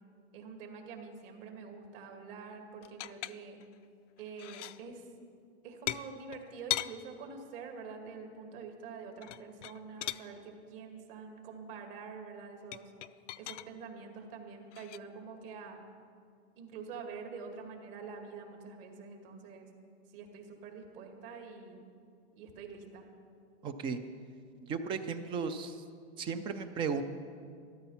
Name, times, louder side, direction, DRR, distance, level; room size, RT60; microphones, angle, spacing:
voice 1, 0.3-3.6 4.2-5.1 5.6-12.9 13.4-15.8 16.6-19.7 20.1-21.8 22.4-23.1, right 5 dB, 50° right, 3 dB, 2.4 m, -46 dB
sound 1, 2.8-3.7 4.2-4.8 5.9-7.0 9.2-10.3 12.7-13.7 14.7-15.0, left 14 dB, 80° left, 0.6 m, -38 dB
voice 2, 23.6-24.0 24.6-25.8 26.2-27.0, right 5 dB, 15° right, 9 dB, 0.3 m, -35 dB
13.5 x 13.0 x 5.7 m, 2.3 s
hypercardioid pair, 140°, 35 cm